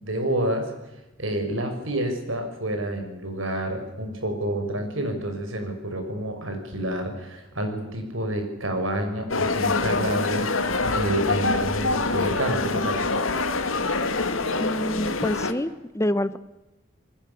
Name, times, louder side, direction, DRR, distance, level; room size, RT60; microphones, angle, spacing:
voice 1, 0.0-0.7 1.2-13.1, right 1 dB, 75° right, 5 dB, 6.0 m, -29 dB
sound 1, 9.3-15.5, left 3 dB, 85° left, 2.2 m, -25 dB
voice 2, 14.6-16.4, left 1 dB, 15° left, 15 dB, 0.9 m, -27 dB
27.5 x 20.0 x 7.0 m, 1.0 s
head